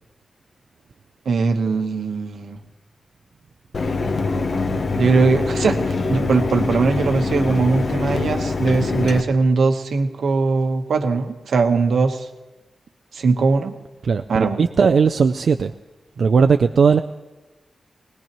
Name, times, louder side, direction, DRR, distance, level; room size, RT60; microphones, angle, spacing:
voice 1, 1.2-2.6 5.0-12.3 13.1-13.7 14.3-14.6, right 4 dB, 85° right, 6 dB, 1.1 m, -20 dB
Mechanisms, 3.7-9.2, left 3 dB, 55° left, 0.9 m, -24 dB
voice 2, 14.0-15.7 16.2-17.0, right 5 dB, 65° right, 7 dB, 0.4 m, -17 dB
21.0 x 19.0 x 3.0 m, 1.2 s
wide cardioid pair, 135°, 0 cm